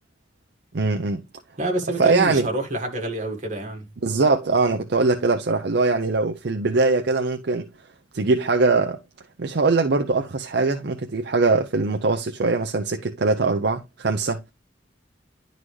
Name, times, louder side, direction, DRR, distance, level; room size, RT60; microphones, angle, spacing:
voice 1, 0.7-1.2 2.0-2.5 4.0-7.7 8.1-9.0 9.4-14.4, right 3 dB, 60° right, 0.6 m, -21 dB
voice 2, 1.6-3.9, right 2 dB, 40° right, 1.8 m, -27 dB
11.0 x 4.0 x 3.2 m
head